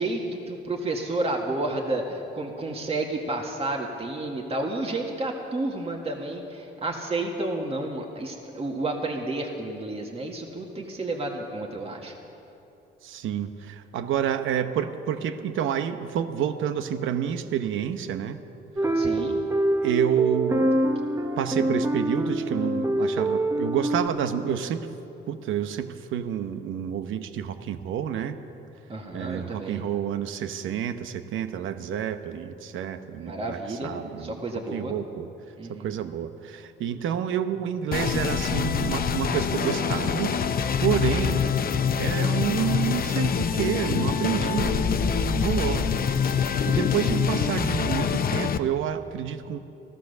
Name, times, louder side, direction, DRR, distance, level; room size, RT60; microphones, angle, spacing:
voice 1, 0.0-12.1 18.9-19.4 28.9-29.9 33.2-35.0 35.6-35.9, right 2 dB, 30° right, 0 dB, 1.8 m, -31 dB
voice 2, 13.0-18.4 19.8-20.7 21.4-24.9 25.3-28.3 29.1-34.4 34.7-35.3 35.7-41.4 42.0-46.0 46.7-49.6, right 9 dB, 80° right, 9 dB, 0.9 m, -29 dB
sound 1, 18.8-24.1, right 1 dB, 15° right, 0.9 m, -25 dB
sound 2, 37.9-48.6, left 7 dB, 50° left, 0.7 m, -25 dB
16.0 x 13.5 x 6.7 m, 2.9 s
cardioid pair, 90°, 20 cm